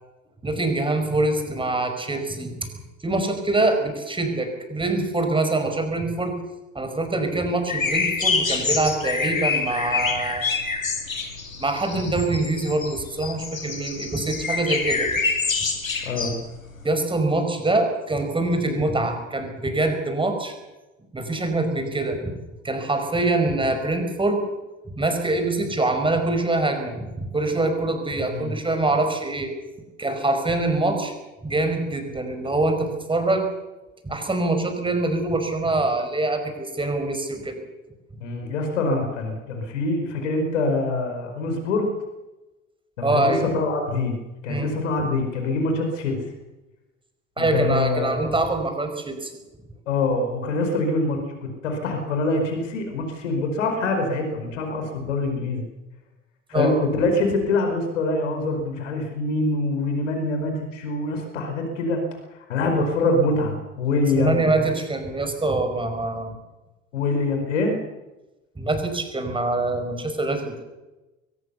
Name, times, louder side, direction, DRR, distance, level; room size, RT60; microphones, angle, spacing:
voice 1, 0.4-2.7 3.0-6.4 6.8-10.5 11.6-15.1 16.8-20.6 21.1-24.4 25.0-29.5 30.0-31.1 31.4-33.5 34.0-37.6 43.0-43.5 44.5-44.7 47.4-49.3 56.5-56.7 64.1-66.3 68.6-70.6, right 2 dB, 15° right, 6 dB, 5.3 m, -24 dB
sound 1, 7.7-16.8, left 4 dB, 80° left, 2.5 m, -26 dB
voice 2, 16.0-16.3 28.3-28.5 38.2-41.9 43.0-44.2 44.4-46.3 47.4-48.3 49.9-55.6 56.5-62.0 62.3-64.7 66.9-67.8, left 2 dB, 65° left, 4 dB, 4.9 m, -24 dB
22.5 x 19.0 x 7.1 m, 1.0 s
figure-of-eight pair, 70°, 39 cm